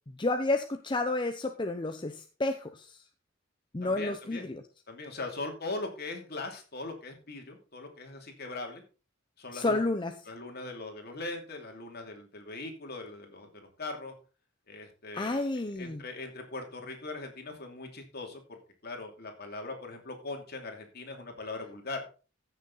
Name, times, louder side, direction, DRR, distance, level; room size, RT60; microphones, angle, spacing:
voice 1, 0.2-3.0 3.7-4.6 9.5-10.1 15.1-16.0, left 2 dB, 25° left, 6 dB, 0.7 m, -30 dB
voice 2, 3.8-4.4 4.9-8.8 9.4-9.8 10.3-14.1 14.7-15.4 15.7-22.0, left 2 dB, 55° left, 3 dB, 2.7 m, -40 dB
15.0 x 6.6 x 4.0 m, 0.35 s
head